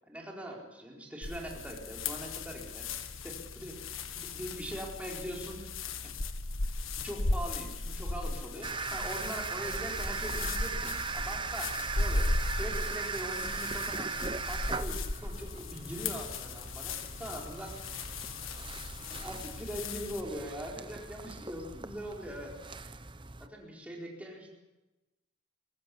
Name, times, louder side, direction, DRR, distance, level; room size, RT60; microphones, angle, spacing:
voice 1, 0.1-3.8 4.2-5.7 7.0-14.1 14.5-17.8 19.0-22.9 23.4-24.5, equal, 5° right, -1 dB, 4.5 m, -42 dB
sound 1, 1.2-20.2, left 2 dB, 80° left, 1.6 m, -37 dB
sound 2, 8.6-23.5, right 4 dB, 25° right, 0.8 m, -39 dB
22.5 x 14.5 x 9.9 m, 1.0 s
head